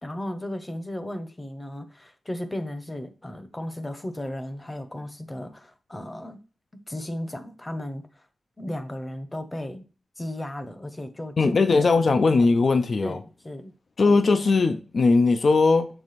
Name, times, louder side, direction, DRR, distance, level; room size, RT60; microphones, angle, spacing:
voice 1, 0.0-6.4 6.9-8.3 8.6-9.8 10.2-12.0 13.0-13.7, left 1 dB, 15° left, 0.9 m, -35 dB
voice 2, 11.4-13.2 14.0-15.9, left 3 dB, 50° left, 0.6 m, -19 dB
6.8 x 3.5 x 4.1 m
wide cardioid pair, 135°, 0 cm